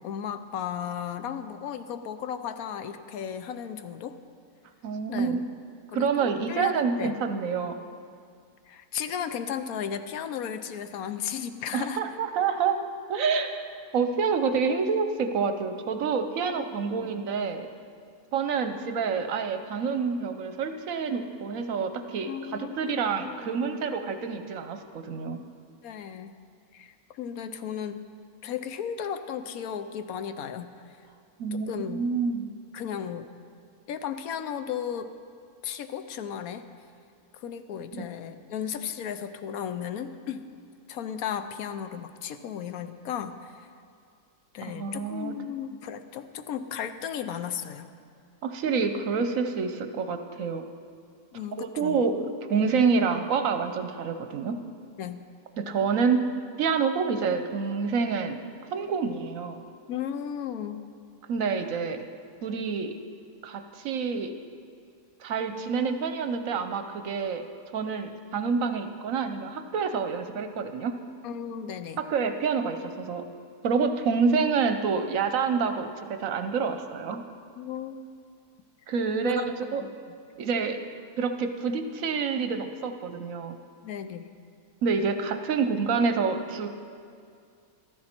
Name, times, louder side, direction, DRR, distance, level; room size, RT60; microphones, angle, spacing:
voice 1, 0.0-4.2 5.1-5.4 5.9-7.1 8.7-12.0 16.5-17.1 22.3-23.8 25.8-26.4 26.7-28.0 28.4-31.0 31.5-32.1 32.7-33.3 33.9-35.1 35.6-36.7 37.3-40.4 40.9-43.7 44.5-47.9 51.3-52.0 55.0-55.3 59.9-60.8 71.2-72.0 77.6-78.1 79.2-80.0 83.8-84.3, left 8 dB, 70° left, 10 dB, 1.1 m, -35 dB
voice 2, 4.8-5.4 5.9-7.8 11.7-12.8 13.1-13.6 13.9-17.7 18.3-25.4 31.4-32.5 38.0-38.1 44.7-45.3 48.4-50.6 51.6-52.1 52.5-54.6 55.6-56.2 56.6-58.4 58.7-59.6 61.3-62.1 62.4-62.9 63.4-64.3 65.2-67.4 67.7-70.9 72.1-73.2 73.6-75.9 76.2-77.2 78.9-79.4 79.7-79.8 80.4-83.5 84.8-86.7, right 5 dB, 65° right, 8 dB, 1.0 m, -27 dB
14.5 x 13.0 x 4.4 m, 2.3 s
omnidirectional pair, 1.6 m